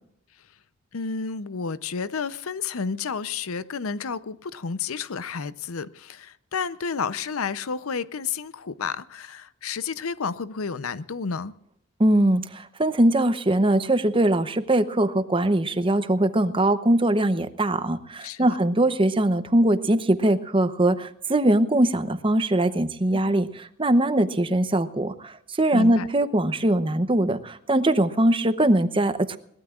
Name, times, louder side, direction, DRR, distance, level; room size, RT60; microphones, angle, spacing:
voice 1, 0.9-11.5 18.2-18.5 23.1-23.3 25.7-26.1, left 5 dB, 80° left, 0.7 m, -31 dB
voice 2, 12.0-23.5 23.8-29.4, right 1 dB, 25° right, 0.8 m, -21 dB
22.0 x 18.5 x 2.4 m
head